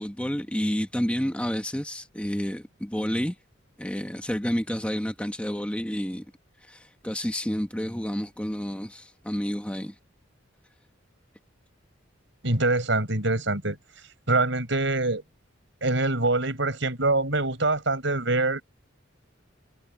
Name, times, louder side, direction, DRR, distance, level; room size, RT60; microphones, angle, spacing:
voice 1, 0.0-3.3 3.8-6.2 6.7-9.9, equal, 5° left, 1.1 m, -30 dB
voice 2, 12.4-13.8 14.3-15.2 15.8-18.6, right 2 dB, 70° right, 5.4 m, -24 dB
head